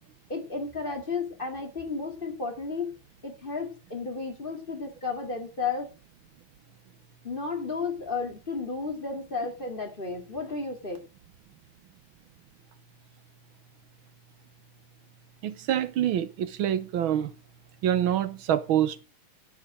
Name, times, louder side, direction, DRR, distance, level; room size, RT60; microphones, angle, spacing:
voice 1, 0.3-2.9 3.2-5.9 7.2-11.0, left 4 dB, 25° left, 2.5 m, -33 dB
voice 2, 15.4-17.3 17.8-19.0, right 10 dB, 90° right, 1.8 m, -26 dB
11.5 x 9.0 x 5.1 m
omnidirectional pair, 2.2 m